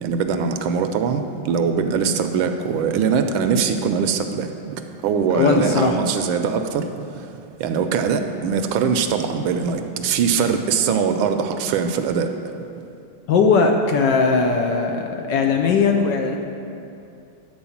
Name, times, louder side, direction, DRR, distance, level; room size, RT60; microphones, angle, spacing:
voice 1, 0.0-7.2 7.6-12.3, right 6 dB, 75° right, 7 dB, 1.3 m, -22 dB
voice 2, 5.3-6.0 13.3-16.4, left 4 dB, 70° left, 2 dB, 1.1 m, -19 dB
10.5 x 4.7 x 7.0 m, 2.6 s
omnidirectional pair, 2.3 m